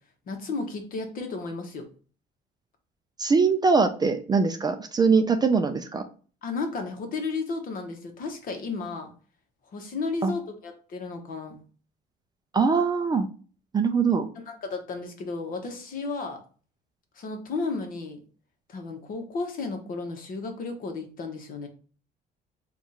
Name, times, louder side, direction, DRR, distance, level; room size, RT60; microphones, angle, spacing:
voice 1, 0.3-1.9 6.4-9.1 9.7-11.6 14.5-16.4 17.1-18.2 18.7-21.7, left 3 dB, 50° left, 5 dB, 1.0 m, -33 dB
voice 2, 3.2-6.0 10.2-10.3 12.5-13.3 13.7-14.3, right 4 dB, 25° right, 6 dB, 0.4 m, -22 dB
3.5 x 2.4 x 4.0 m, 0.39 s
cardioid pair, 115°, 18 cm